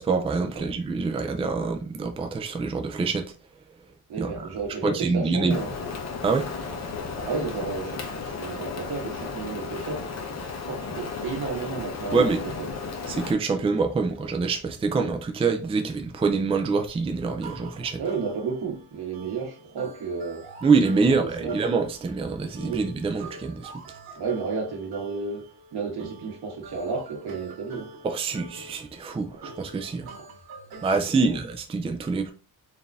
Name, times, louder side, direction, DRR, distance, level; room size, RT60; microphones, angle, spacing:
voice 1, 0.0-3.3 4.2-4.5 4.8-5.6 6.2-6.5 12.1-12.5 13.1-18.0 20.6-23.7 28.0-30.1 30.8-32.3, right 4 dB, 15° right, 0.3 m, -25 dB
voice 2, 4.1-5.7 7.2-10.1 10.4-12.3 18.0-20.5 21.0-21.6 22.6-22.8 24.2-27.9 29.4-29.5 30.0-30.2 30.9-31.4, right 4 dB, 90° right, 1.6 m, -32 dB
Rain, 5.5-13.3, left 4 dB, 45° left, 0.7 m, -34 dB
sound 1, 17.4-31.1, right 3 dB, 70° right, 1.2 m, -45 dB
4.0 x 2.6 x 3.4 m
wide cardioid pair, 180°, 38 cm